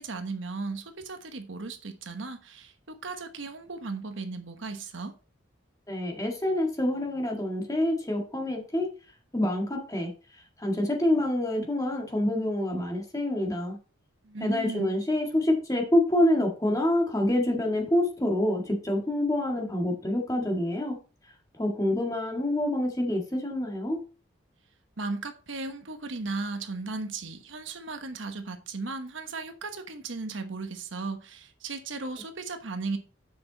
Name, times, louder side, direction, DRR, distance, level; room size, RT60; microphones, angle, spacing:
voice 1, 0.0-5.1 14.2-14.9 25.0-33.0, right 3 dB, 75° right, 1.1 m, -36 dB
voice 2, 5.9-8.9 9.3-10.1 10.6-13.8 14.4-21.0 21.6-24.0, left 1 dB, 15° left, 1.7 m, -27 dB
7.7 x 5.8 x 4.0 m
head